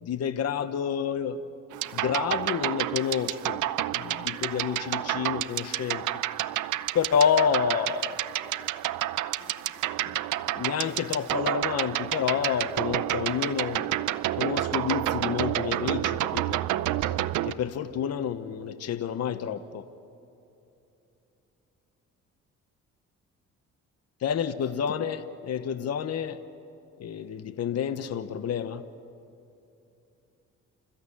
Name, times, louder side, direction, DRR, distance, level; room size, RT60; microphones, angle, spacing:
voice 1, 0.0-1.4 1.9-3.6 3.9-6.2 6.9-8.2 10.0-10.2 10.5-13.9 14.4-16.6 17.0-17.1 17.4-19.9 24.2-26.4 27.0-28.8, left 7 dB, 55° left, 11 dB, 1.0 m, -29 dB
sound 1, 1.7-17.5, right 14 dB, 80° right, 0.8 m, -29 dB
28.0 x 14.5 x 9.9 m, 2.8 s
cardioid pair, 90°, 30 cm